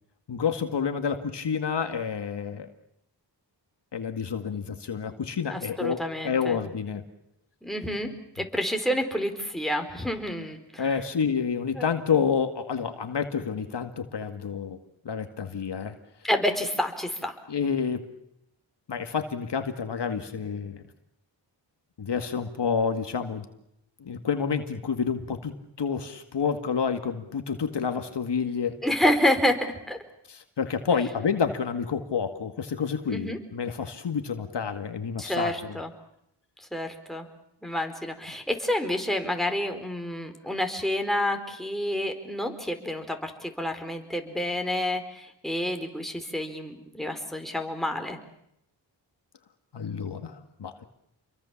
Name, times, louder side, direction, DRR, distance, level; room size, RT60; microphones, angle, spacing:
voice 1, 0.3-2.7 3.9-7.0 10.8-14.8 15.0-16.0 17.5-18.0 18.9-20.8 22.0-23.5 24.0-28.8 30.3-35.8 49.7-50.8, left 6 dB, 65° left, 7 dB, 2.1 m, -29 dB
voice 2, 5.5-6.6 7.6-8.1 8.4-11.0 11.8-11.9 16.2-17.4 28.8-30.0 33.1-33.4 35.2-35.9 36.7-37.3 37.6-48.2, left 1 dB, ahead, 4 dB, 4.5 m, -29 dB
29.0 x 23.0 x 7.3 m, 0.77 s
cardioid pair, 70°, 45 cm